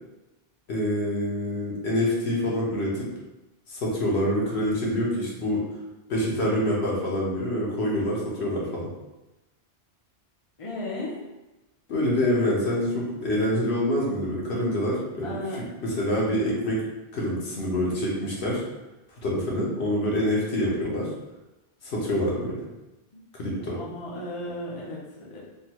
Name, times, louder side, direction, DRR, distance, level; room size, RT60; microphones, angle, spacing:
voice 1, 0.7-3.1 3.7-5.6 6.1-8.9 11.9-15.3 15.8-16.9 17.1-18.6 19.2-21.1 21.8-22.6 23.4-23.8, left 1 dB, 70° left, -4 dB, 1.1 m, -26 dB
voice 2, 10.6-11.2 15.2-15.6 23.1-23.2 23.7-25.4, left 1 dB, 35° left, -4 dB, 0.6 m, -35 dB
3.7 x 2.3 x 2.9 m, 1.0 s
omnidirectional pair, 1.2 m